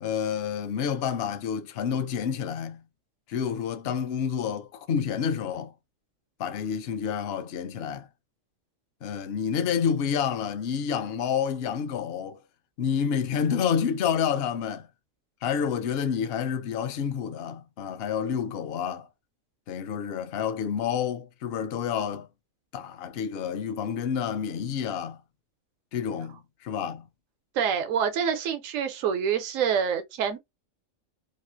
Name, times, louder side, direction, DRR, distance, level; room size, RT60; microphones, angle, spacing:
voice 1, 0.0-2.8 3.3-5.7 6.4-8.1 9.0-12.4 12.8-14.9 15.4-19.1 19.7-22.3 22.7-25.2 25.9-27.0, left 7 dB, 60° left, 0.7 m, -29 dB
voice 2, 27.5-30.4, right 7 dB, 75° right, 1.0 m, -26 dB
3.0 x 2.4 x 2.6 m
omnidirectional pair, 1.4 m